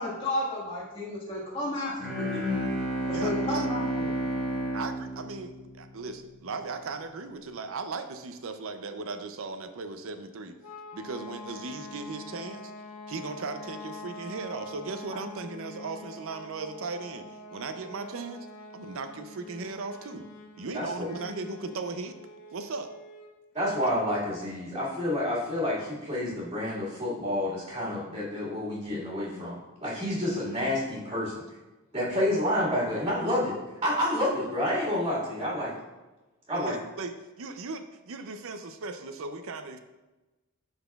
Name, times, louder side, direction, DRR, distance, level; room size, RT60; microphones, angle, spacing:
voice 1, 0.0-2.4 3.1-4.2, left 1 dB, 25° left, -6 dB, 1.7 m, -32 dB
Bowed string instrument, 2.0-6.3, right 1 dB, ahead, 1.3 m, -31 dB
voice 2, 3.1-3.7 4.7-10.6 10.9-12.7 13.1-18.5 18.7-20.3 20.6-22.2 22.5-22.9 36.5-39.8, right 3 dB, 65° right, 9 dB, 0.5 m, -37 dB
sound 1, 10.6-23.4, left 2 dB, 85° left, 0.6 m, -45 dB
voice 3, 20.7-21.1 23.5-31.4 31.9-33.6 33.8-35.7 36.5-36.8, left 1 dB, 25° right, -8 dB, 1.9 m, -29 dB
12.0 x 4.0 x 2.3 m, 1.1 s
head